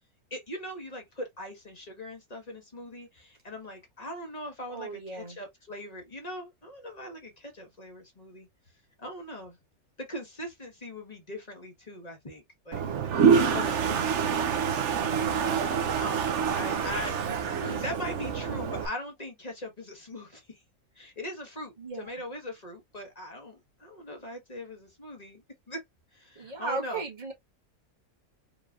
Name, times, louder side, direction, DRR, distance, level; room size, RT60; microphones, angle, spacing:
voice 1, 0.3-8.5 9.0-9.6 10.0-12.8 13.2-20.6 20.9-25.8 26.1-27.0, left 1 dB, 25° left, 1.7 m, -41 dB
voice 2, 4.7-5.4 21.8-22.1 26.4-27.3, right 3 dB, 30° right, 1.7 m, -36 dB
Toilet flush, 12.7-18.9, right 6 dB, 60° right, 0.9 m, -26 dB
5.2 x 3.3 x 2.5 m
omnidirectional pair, 1.6 m